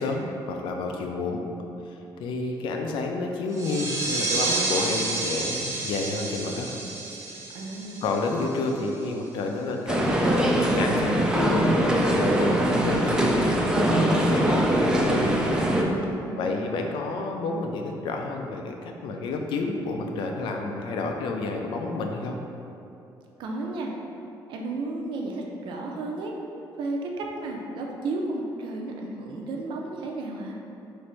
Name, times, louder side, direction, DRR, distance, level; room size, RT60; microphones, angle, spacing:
voice 1, 0.0-1.4 1.9-6.7 7.3-7.4 8.0-10.2 10.7-13.3 13.7-15.3 16.4-22.4, left 3 dB, 80° left, 2 dB, 0.4 m, -30 dB
sound 1, 3.5-8.9, right 2 dB, 35° right, 0.7 m, -30 dB
voice 2, 7.5-8.0 16.1-16.6 23.4-24.0 24.5-26.3 26.8-30.6, right 2 dB, 75° right, 0 dB, 0.5 m, -33 dB
sound 2, 9.9-15.8, right 1 dB, 10° right, 0.4 m, -22 dB
3.1 x 2.6 x 4.4 m, 2.8 s
cardioid pair, 135°, 8 cm